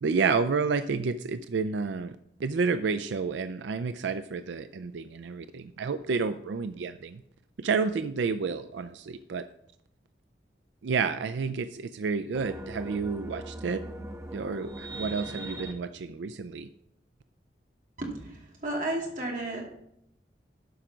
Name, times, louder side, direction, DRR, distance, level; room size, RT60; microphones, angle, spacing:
voice 1, 0.0-7.2 7.6-9.5 10.8-13.8 14.3-16.7, right 5 dB, 90° right, 12 dB, 0.4 m, -30 dB
sound 1, 12.3-15.7, right 1 dB, 20° right, 0.9 m, -40 dB
voice 2, 18.0-19.7, right 1 dB, 45° right, -1 dB, 2.4 m, -33 dB
12.0 x 5.1 x 6.0 m, 0.76 s
head